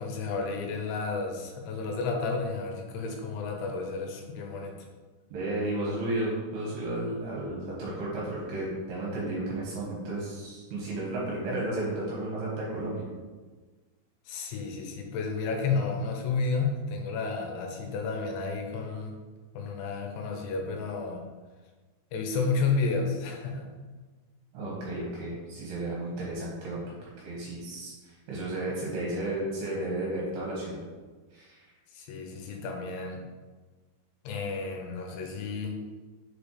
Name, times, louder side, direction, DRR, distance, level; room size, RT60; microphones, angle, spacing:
voice 1, 0.0-4.9 14.3-19.2 19.5-21.2 22.1-23.7 31.9-33.2 34.2-35.8, left 4 dB, 90° left, 2 dB, 3.2 m, -31 dB
voice 2, 5.3-13.0 24.5-30.8 31.3-31.7, right 1 dB, 70° right, -5 dB, 3.1 m, -33 dB
6.9 x 5.1 x 3.3 m, 1.3 s
omnidirectional pair, 5.3 m